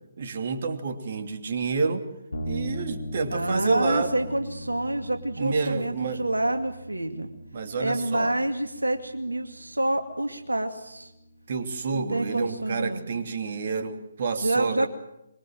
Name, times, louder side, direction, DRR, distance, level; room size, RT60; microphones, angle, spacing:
voice 1, 0.2-2.0 2.5-4.1 5.4-6.2 7.5-8.3 11.5-14.9, right 4 dB, 50° right, 6 dB, 2.8 m, -29 dB
sound 1, 2.3-11.8, equal, 70° left, 5.8 m, -40 dB
voice 2, 3.3-7.3 7.8-11.1 11.9-13.1 14.4-14.9, right 1 dB, 85° right, 6 dB, 2.3 m, -28 dB
24.5 x 23.0 x 7.7 m, 0.83 s
figure-of-eight pair, 140°, 0 cm